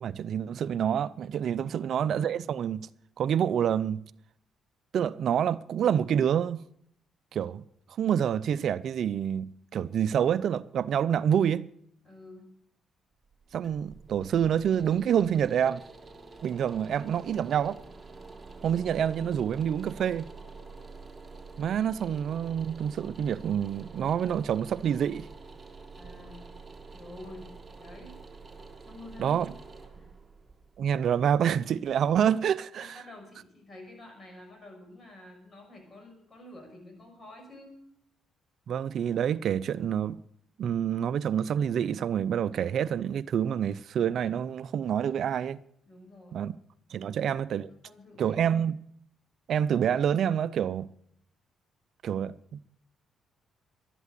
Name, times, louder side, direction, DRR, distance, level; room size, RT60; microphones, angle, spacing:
voice 1, 0.0-2.9 3.2-4.1 4.9-6.6 7.3-7.6 8.0-11.7 13.5-15.8 16.4-17.8 18.6-20.3 21.6-25.3 29.2-29.5 30.8-32.9 38.7-40.2 40.6-45.6 46.3-46.6 46.9-47.7 48.2-48.8 49.5-50.9 52.0-52.6, right 8 dB, 65° right, 0.5 m, -27 dB
voice 2, 12.0-12.5 25.9-26.5 26.9-27.5 27.8-28.1 28.8-29.5 29.9-30.1 32.8-37.8 45.8-46.5 46.9-47.2 47.7-48.6, left 1 dB, 35° left, 5.9 m, -49 dB
sound 1, 13.2-32.2, right 4 dB, 20° right, 2.0 m, -48 dB
12.0 x 11.0 x 6.7 m
cardioid pair, 90°, 0 cm